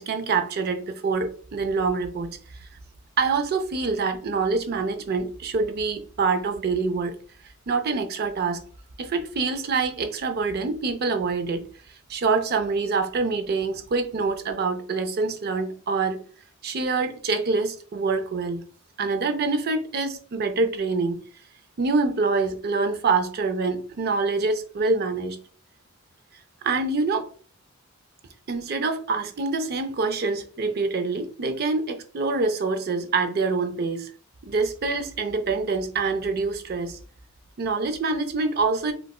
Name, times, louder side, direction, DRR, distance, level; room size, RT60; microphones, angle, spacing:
voice 1, 0.0-2.3 3.2-7.1 7.7-8.6 9.0-11.7 12.1-16.2 16.6-18.6 19.0-21.2 21.8-25.4 26.6-27.3 28.5-34.1 34.4-37.0 37.6-38.9, right 4 dB, 50° right, 0.5 m, -25 dB
3.9 x 2.3 x 2.3 m
head